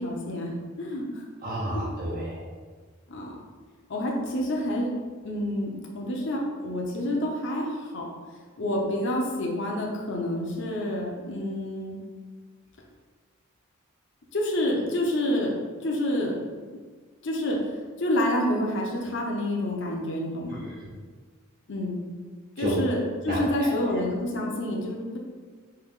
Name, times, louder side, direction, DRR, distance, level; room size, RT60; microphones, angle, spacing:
voice 1, 0.0-1.2 3.1-3.3 3.9-4.9 5.2-8.0 8.6-12.0 14.3-15.5 15.8-16.3 17.2-17.6 18.0-20.6 21.7-22.0 22.6-25.2, left 1 dB, 65° left, -1 dB, 0.7 m, -28 dB
voice 2, 1.4-2.4 20.5-20.9 22.6-22.7 23.3-23.7, equal, 45° right, -7 dB, 0.7 m, -31 dB
4.6 x 2.8 x 3.6 m, 1.5 s
head